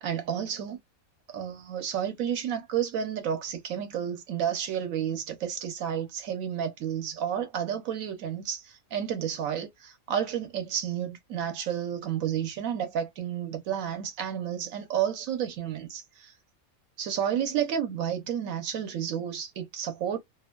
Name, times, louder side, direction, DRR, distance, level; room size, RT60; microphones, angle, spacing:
voice 1, 0.0-0.8 1.3-16.3 17.0-20.2, right 9 dB, 70° right, 1.0 m, -31 dB
2.8 x 2.1 x 2.3 m
omnidirectional pair, 1.5 m